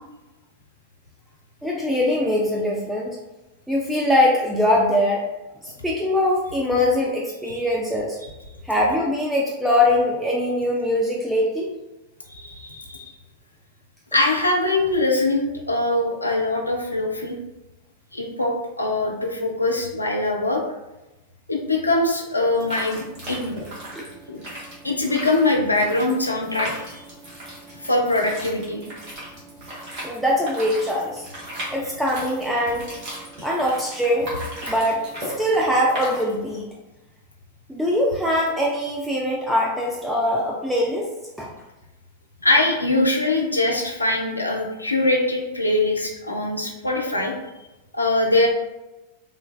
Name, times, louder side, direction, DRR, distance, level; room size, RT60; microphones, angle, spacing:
voice 1, 1.6-3.2 3.7-5.2 5.6-8.2 8.6-11.7 23.9-24.1 30.0-31.3 31.7-32.9 33.4-34.3 34.6-36.7 37.7-41.1 41.4-41.5, left 1 dB, 5° right, -3 dB, 0.3 m, -22 dB
voice 2, 12.3-13.0 14.1-17.4 18.1-20.6 21.5-23.5 24.3-24.4 24.8-27.0 27.8-28.8 42.4-47.3 47.9-48.5, left 2 dB, 85° left, 0 dB, 0.4 m, -22 dB
sound 1, 22.5-36.6, right 1 dB, 40° right, 1.1 m, -37 dB
3.1 x 2.2 x 2.2 m, 1.0 s
figure-of-eight pair, 90°, 0 cm